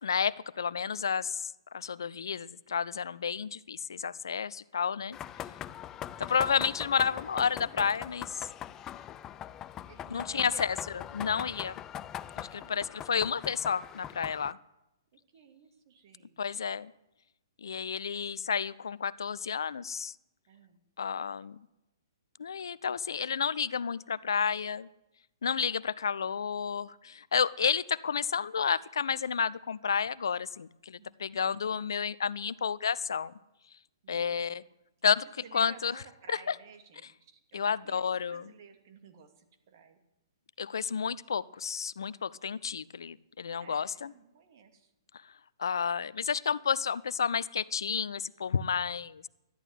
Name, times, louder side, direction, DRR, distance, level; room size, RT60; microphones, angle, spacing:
voice 1, 0.0-5.2 6.2-8.5 10.1-10.8 11.1-11.8 12.4-14.6 16.4-16.9 17.6-20.1 21.0-21.6 22.4-24.9 25.4-33.3 34.1-34.6 35.0-35.3 35.5-36.0 36.3-36.5 37.5-38.5 40.6-44.1 45.6-49.3, left 6 dB, 70° left, 20 dB, 0.6 m, -31 dB
sound 1, 5.1-14.5, left 10 dB, 20° left, 0.5 m, -42 dB
voice 2, 9.9-10.7 12.5-13.1 15.1-16.7 20.5-20.8 31.0-31.6 34.0-34.6 35.4-40.0 43.5-44.9, right 7 dB, 50° right, 6 dB, 2.7 m, -54 dB
13.0 x 11.0 x 9.1 m, 0.91 s
hypercardioid pair, 130°, 2 cm